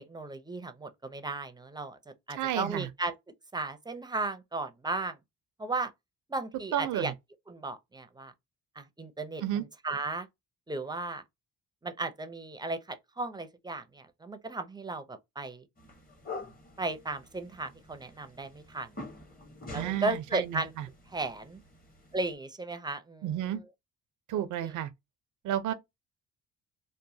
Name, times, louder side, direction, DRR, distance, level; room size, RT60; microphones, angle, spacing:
voice 1, 0.0-2.0 2.3-3.1 3.5-5.2 5.6-5.9 6.3-7.1 7.5-8.3 8.8-9.4 9.8-10.3 10.7-11.2 11.8-15.6 16.8-18.9 19.7-20.7 21.1-21.6 22.1-23.2 24.6-24.7, right 3 dB, 15° right, 0.5 m, -35 dB
voice 2, 2.3-2.9 6.7-7.1 9.4-9.6 19.7-20.9 23.2-23.6 24.3-24.9 25.4-25.7, right 11 dB, 80° right, 0.6 m, -31 dB
sound 1, 15.8-22.3, left 2 dB, 30° left, 1.0 m, -47 dB
3.0 x 2.1 x 2.6 m
cardioid pair, 90°, 30 cm